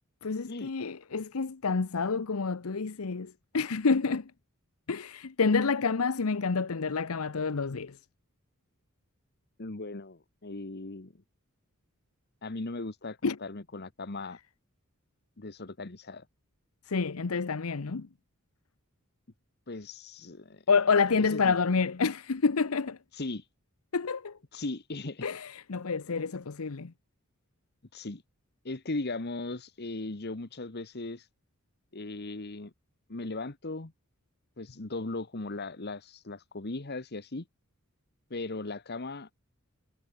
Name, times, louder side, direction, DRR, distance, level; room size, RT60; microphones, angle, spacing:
voice 1, 0.2-4.2 4.9-8.0 13.2-13.4 16.9-18.1 20.7-23.0 23.9-24.4 25.2-26.9, left 4 dB, 90° left, 0.8 m, -28 dB
voice 2, 9.6-11.1 12.4-14.4 15.4-16.3 19.7-20.6 21.0-21.6 23.1-23.5 24.5-25.3 27.9-28.2 28.6-31.3 31.9-32.7 33.1-33.9 34.6-37.4 38.3-39.3, left 2 dB, 50° left, 1.3 m, -38 dB
head